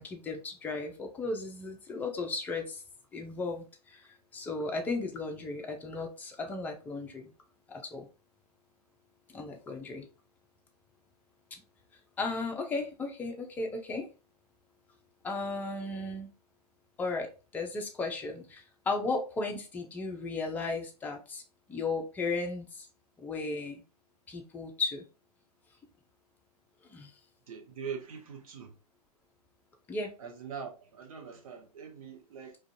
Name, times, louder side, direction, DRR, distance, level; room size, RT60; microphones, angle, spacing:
voice 1, 0.0-2.8 3.1-7.3 7.7-8.1 9.3-10.1 11.5-11.6 12.2-14.1 15.2-16.3 17.0-21.4 21.7-22.9 23.2-23.8 24.3-25.0 26.9-27.1 29.9-30.1, left 3 dB, 10° left, 0.3 m, -35 dB
voice 2, 27.5-28.7 30.2-32.6, right 6 dB, 60° right, 0.6 m, -42 dB
2.4 x 2.2 x 2.5 m
figure-of-eight pair, 115°, 21 cm